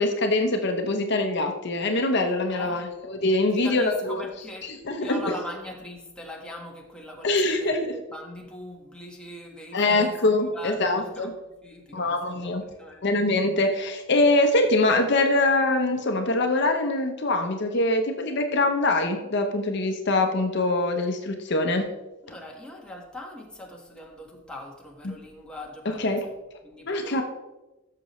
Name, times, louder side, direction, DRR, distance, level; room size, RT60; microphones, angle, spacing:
voice 1, 0.0-4.2 4.6-5.2 7.2-7.8 9.7-11.3 11.9-12.6 13.0-21.8 25.0-25.1 26.0-26.2 26.9-27.2, left 2 dB, 60° left, 5 dB, 0.9 m, -23 dB
voice 2, 2.5-2.8 3.5-4.7 5.0-7.7 8.1-11.3 11.6-13.1 22.2-26.2 26.6-27.2, left 1 dB, 5° left, -1 dB, 1.5 m, -41 dB
13.0 x 6.8 x 3.1 m, 1.0 s
head